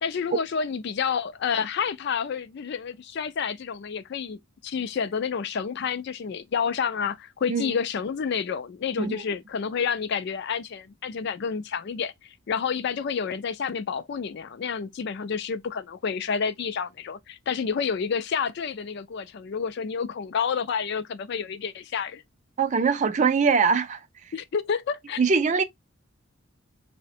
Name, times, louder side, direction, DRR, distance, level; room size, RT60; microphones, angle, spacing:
voice 1, 0.0-12.1 12.5-22.2 24.3-25.2, left 6 dB, 55° left, 0.4 m, -29 dB
voice 2, 22.6-24.0 25.2-25.6, right 5 dB, 35° right, 0.3 m, -22 dB
4.8 x 2.1 x 2.6 m
head